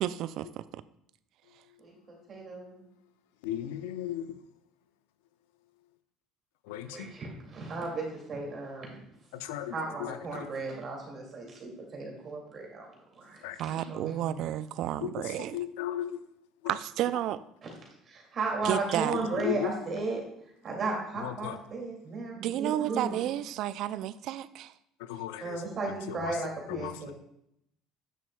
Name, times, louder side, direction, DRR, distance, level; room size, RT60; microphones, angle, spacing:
voice 1, 0.0-0.8 13.6-15.6 16.7-17.4 18.6-19.2 22.4-24.7, right 12 dB, 65° right, 16 dB, 0.3 m, -31 dB
voice 2, 1.8-2.7 6.9-9.0 9.7-12.9 13.1-14.5 17.6-17.7 18.1-20.2 20.6-23.3 25.4-27.1, right 3 dB, 45° right, -1 dB, 2.3 m, -35 dB
voice 3, 3.4-4.4 6.6-7.1 9.3-10.5 13.4-13.6 15.0-16.3 19.1-19.7 21.2-21.6 25.0-25.6 26.1-26.4 26.7-27.1, left 12 dB, 85° left, 12 dB, 0.5 m, -36 dB
9.0 x 6.2 x 2.2 m, 0.77 s
supercardioid pair, 85°, 0 cm